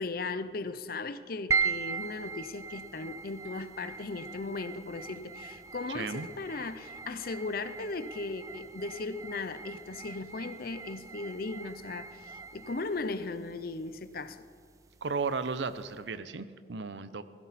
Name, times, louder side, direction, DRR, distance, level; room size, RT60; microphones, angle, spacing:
voice 1, 0.0-14.4, left 3 dB, 50° left, 12 dB, 0.7 m, -37 dB
sound 1, 1.5-16.0, right 5 dB, 15° right, 0.3 m, -39 dB
voice 2, 5.9-6.3 15.0-17.2, right 4 dB, 75° right, 13 dB, 0.7 m, -34 dB
16.5 x 15.5 x 4.2 m, 2.2 s
head